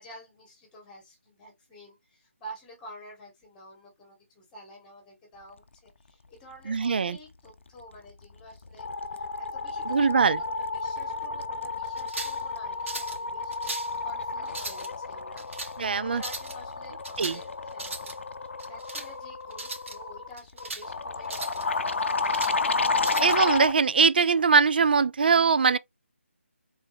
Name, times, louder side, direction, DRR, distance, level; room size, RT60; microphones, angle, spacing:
voice 1, 0.0-13.6 14.0-15.4 16.0-22.7, equal, 10° left, 2.1 m, -49 dB
voice 2, 6.7-7.2 9.9-10.4 15.8-16.2 17.2-17.4 23.2-25.8, right 5 dB, 45° right, 0.4 m, -22 dB
sound 1, 7.9-8.2 8.5-23.8, left 3 dB, 60° left, 0.6 m, -31 dB
sound 2, 12.0-12.4 12.9-13.2 13.5-13.9 14.5-14.9 15.4-15.7 16.2-16.5 17.0-17.4 17.7-18.1 18.6-19.1 19.5-20.0 20.4-20.9 21.2-21.6 22.1-22.6 23.0-23.4, right 2 dB, 70° right, 2.3 m, -37 dB
4.0 x 3.4 x 3.3 m
figure-of-eight pair, 165°, 7 cm